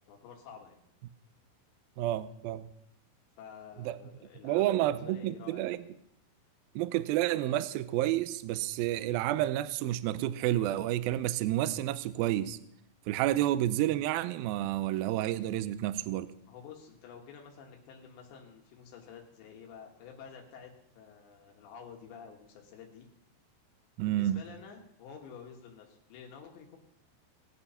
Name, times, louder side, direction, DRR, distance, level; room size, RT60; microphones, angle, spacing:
voice 1, 0.1-0.8 3.4-5.8 16.5-23.1 24.0-26.8, left 6 dB, 85° left, 1 dB, 3.9 m, -50 dB
voice 2, 2.0-2.7 3.8-4.0 4.4-5.8 6.8-12.6 13.1-16.3 24.0-24.4, right 14 dB, 90° right, 14 dB, 2.1 m, -30 dB
21.0 x 8.6 x 5.6 m, 0.75 s
omnidirectional pair, 5.0 m